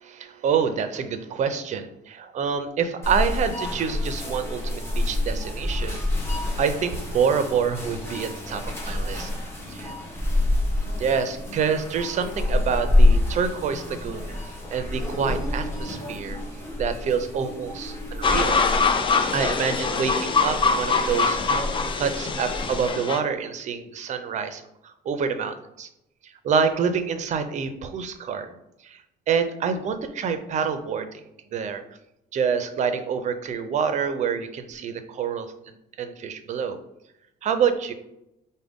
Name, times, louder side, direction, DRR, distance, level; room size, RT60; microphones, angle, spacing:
voice 1, 0.0-6.1 6.6-9.3 11.0-14.4 14.7-16.4 16.8-18.6 19.3-21.6 22.0-25.9 26.2-28.6 28.8-29.0 29.3-31.2 31.5-31.8 32.3-35.5 36.0-36.8 37.4-37.9, right 6 dB, 45° right, 9 dB, 0.5 m, -27 dB
sound 1, 3.0-22.9, left 1 dB, 15° left, 1.2 m, -27 dB
sound 2, 18.2-23.2, left 4 dB, 30° left, 0.4 m, -23 dB
4.8 x 2.1 x 3.5 m, 0.84 s
cardioid pair, 110°, 17 cm